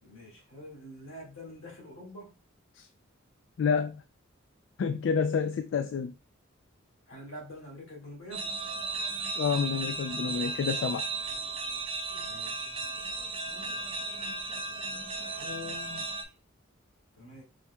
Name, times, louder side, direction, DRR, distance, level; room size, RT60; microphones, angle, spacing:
voice 1, 0.0-2.3 7.1-8.5 12.1-12.8 14.3-14.4 15.1-16.3 17.2-17.4, left 2 dB, 90° left, 2.0 m, -46 dB
voice 2, 3.6-4.0 4.8-6.1 9.4-11.0, left 6 dB, 70° left, 0.3 m, -29 dB
sound 1, 8.3-16.2, right 3 dB, 25° right, 0.5 m, -35 dB
4.7 x 4.3 x 2.2 m
head